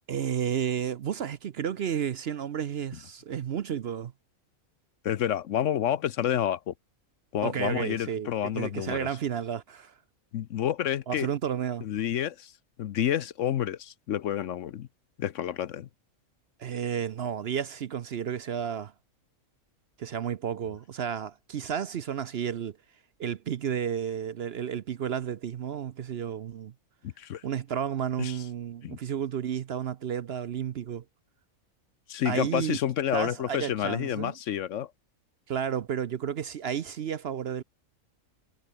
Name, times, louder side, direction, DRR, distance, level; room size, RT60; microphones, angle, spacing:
voice 1, 0.1-4.1 7.4-9.9 11.1-11.9 16.6-18.9 20.0-22.8 23.2-26.7 27.4-31.0 32.2-32.8 33.1-34.3 35.5-37.6, right 8 dB, 55° right, 0.8 m, -32 dB
voice 2, 5.0-6.7 7.3-9.1 10.3-11.3 11.8-12.5 12.8-14.9 15.2-15.9 27.0-27.4 28.2-28.4 28.8-29.0 32.1-34.9, left 10 dB, 65° left, 1.0 m, -29 dB
omnidirectional pair, 1.4 m